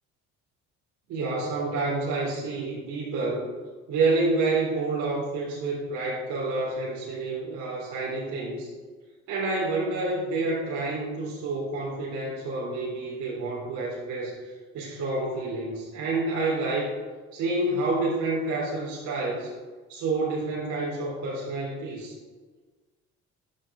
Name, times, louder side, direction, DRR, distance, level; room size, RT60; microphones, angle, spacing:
voice 1, 1.1-3.5 3.9-8.7 9.3-14.4 14.7-16.9 17.3-19.5 19.9-22.2, right 3 dB, 70° right, -4 dB, 3.7 m, -28 dB
11.5 x 9.0 x 3.7 m, 1.3 s
cardioid pair, 85°, 30 cm